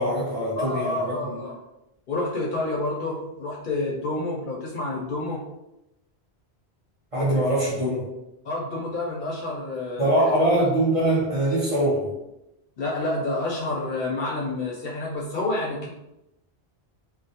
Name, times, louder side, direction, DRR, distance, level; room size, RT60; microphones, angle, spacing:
voice 1, 0.0-1.4 7.1-8.1 10.0-12.1, right 1 dB, 40° right, -7 dB, 0.6 m, -23 dB
voice 2, 0.6-1.5 2.1-5.4 8.4-10.1 12.8-15.9, left 2 dB, 60° left, -4 dB, 0.6 m, -28 dB
2.2 x 2.0 x 2.7 m, 0.91 s
omnidirectional pair, 1.1 m